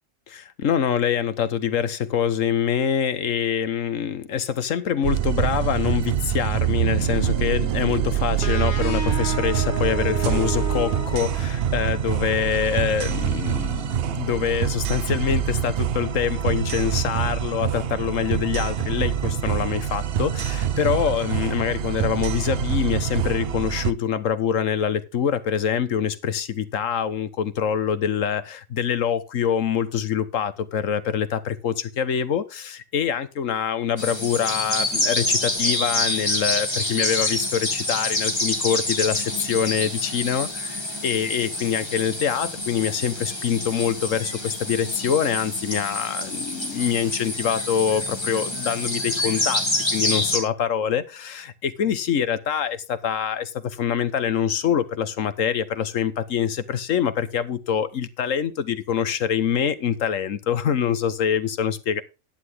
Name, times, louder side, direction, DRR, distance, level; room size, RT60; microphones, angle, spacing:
voice 1, 0.3-49.6 49.9-62.0, left 8 dB, 80° left, 1.4 m, -25 dB
sound 1, 5.0-23.9, right 10 dB, 60° right, 0.8 m, -25 dB
sound 2, 8.4-11.9, right 1 dB, 40° left, 1.9 m, -31 dB
sound 3, 34.0-50.4, left 1 dB, 20° left, 2.6 m, -27 dB
11.0 x 9.9 x 3.6 m
omnidirectional pair, 1.3 m